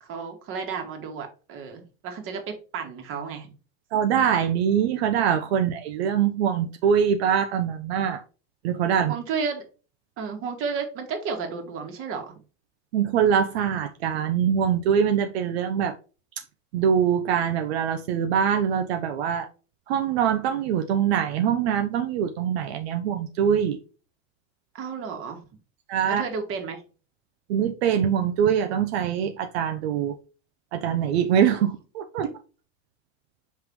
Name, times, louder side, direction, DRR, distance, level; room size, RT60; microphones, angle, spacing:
voice 1, 0.0-2.4 2.7-3.5 9.1-9.6 10.2-12.4 24.7-25.4 26.1-26.8, right 5 dB, 45° right, 2.1 m, -32 dB
voice 2, 3.9-8.2 8.6-9.1 12.9-15.9 16.7-19.5 19.9-23.8 25.9-26.2 27.5-30.1 30.7-32.2, right 8 dB, 80° right, 1.0 m, -23 dB
5.6 x 5.6 x 3.1 m
supercardioid pair, 140°, 31 cm